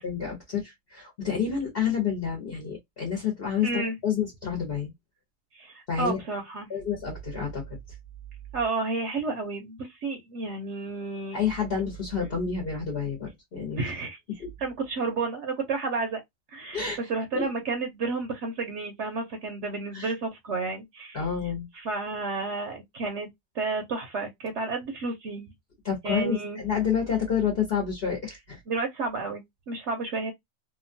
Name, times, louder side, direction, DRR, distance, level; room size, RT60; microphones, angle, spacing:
voice 1, 0.0-4.9 5.9-6.2 6.7-7.8 11.3-13.9 14.4-14.5 16.7-17.0 17.3-17.5 19.9-20.1 21.1-21.7 25.8-28.6, left 7 dB, 50° left, 1.2 m, -29 dB
voice 2, 3.6-4.0 5.5-6.7 8.5-11.4 13.8-14.2 14.6-16.2 16.5-21.2 21.7-23.3 23.5-25.5 26.0-26.6 28.7-30.3, right 3 dB, 65° right, 0.9 m, -31 dB
2.8 x 2.4 x 2.6 m
omnidirectional pair, 1.4 m